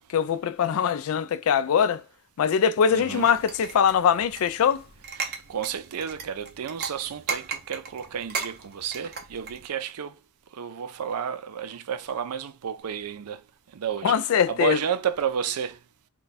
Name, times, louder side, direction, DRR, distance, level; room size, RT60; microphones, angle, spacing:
voice 1, 0.1-2.0 2.4-4.8 14.0-14.8, left 7 dB, 70° left, 0.3 m, -22 dB
voice 2, 2.9-3.3 5.2-10.1 10.5-13.4 13.7-14.1 14.5-15.8, right 8 dB, 90° right, 0.4 m, -31 dB
sound 1, 3.1-9.7, right 5 dB, 45° right, 0.8 m, -37 dB
3.3 x 2.3 x 4.0 m
head